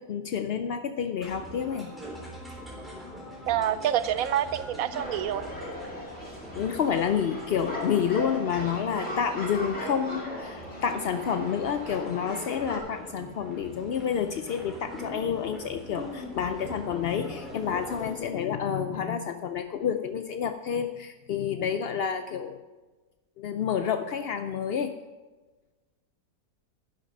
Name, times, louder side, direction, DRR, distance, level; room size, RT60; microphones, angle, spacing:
voice 1, 0.0-1.9 6.6-22.6 23.4-24.9, left 7 dB, 75° left, 8 dB, 0.5 m, -29 dB
sound 1, 1.2-18.1, equal, ahead, 3.5 m, -43 dB
voice 2, 3.5-5.5, right 11 dB, 70° right, 14 dB, 1.0 m, -27 dB
sound 2, 4.9-12.8, equal, 40° left, 3.0 m, -39 dB
11.5 x 10.5 x 5.3 m, 1.3 s
omnidirectional pair, 1.7 m